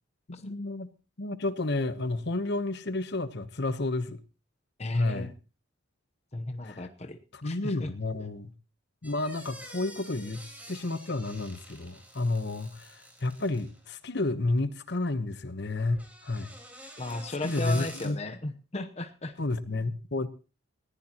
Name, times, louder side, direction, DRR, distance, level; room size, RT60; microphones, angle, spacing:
voice 1, 0.3-0.9 1.2-4.2 4.9-5.3 6.6-6.8 7.3-8.5 9.0-16.5 17.4-18.2 19.4-20.3, left 2 dB, 55° left, 1.0 m, -31 dB
voice 2, 4.8-5.3 6.3-7.9 17.0-19.4, left 2 dB, 30° left, 0.9 m, -35 dB
sound 1, 9.0-13.9 15.8-18.1, right 1 dB, 10° right, 4.2 m, -48 dB
20.0 x 15.0 x 3.0 m
head